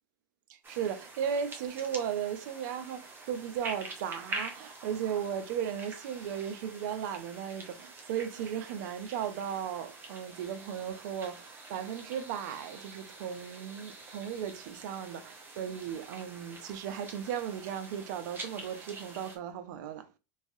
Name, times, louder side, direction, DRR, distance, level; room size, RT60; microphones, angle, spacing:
voice 1, 0.5-20.1, right 8 dB, 70° right, 0.6 m, -36 dB
sound 1, 0.6-19.4, right 3 dB, 20° right, 0.8 m, -46 dB
3.1 x 2.7 x 2.6 m
supercardioid pair, 130°, 10 cm